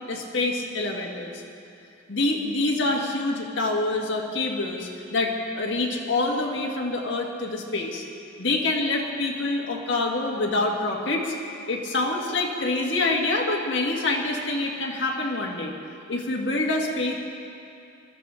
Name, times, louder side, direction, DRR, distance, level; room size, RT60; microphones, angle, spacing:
voice 1, 0.1-1.4 2.1-8.0 8.4-11.3 11.7-15.7 16.1-17.1, left 2 dB, 65° left, -1 dB, 1.7 m, -26 dB
19.5 x 13.0 x 3.7 m, 2.5 s
head